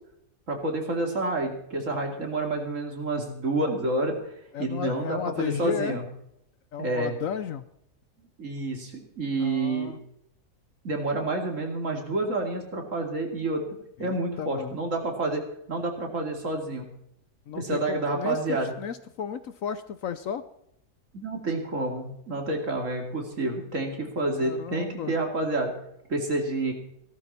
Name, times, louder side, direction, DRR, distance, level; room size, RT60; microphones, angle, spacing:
voice 1, 0.5-4.3 4.6-6.0 6.8-7.1 8.4-9.9 10.8-13.7 14.0-16.8 17.5-18.7 21.1-25.7 26.1-26.7, right 2 dB, 50° right, 3 dB, 2.9 m, -29 dB
voice 2, 4.5-6.0 6.7-7.6 9.4-10.0 14.0-14.8 17.5-20.4 24.3-25.1, left 8 dB, 65° left, 12 dB, 1.0 m, -34 dB
16.0 x 13.5 x 4.2 m, 0.74 s
omnidirectional pair, 1.7 m